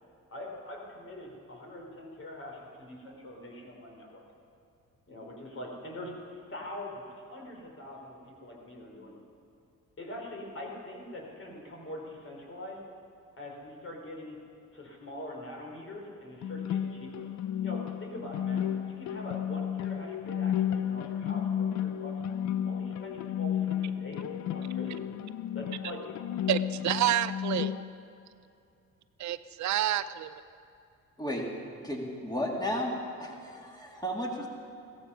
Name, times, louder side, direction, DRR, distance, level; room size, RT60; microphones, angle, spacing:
voice 1, 0.3-4.2 5.1-9.2 10.0-12.8 13.4-14.4 14.7-17.3 17.6-22.2 22.7-25.0 25.5-26.1, left 1 dB, 45° left, 0 dB, 4.0 m, -43 dB
sound 1, 16.4-27.8, left 9 dB, 65° left, 0.6 m, -32 dB
voice 2, 26.5-27.7 29.2-30.4, right 12 dB, 70° right, 14 dB, 0.5 m, -29 dB
voice 3, 31.8-32.9 33.2-34.5, equal, 15° left, -1 dB, 2.7 m, -33 dB
16.0 x 14.0 x 5.5 m, 2.5 s
cardioid pair, 90°, 30 cm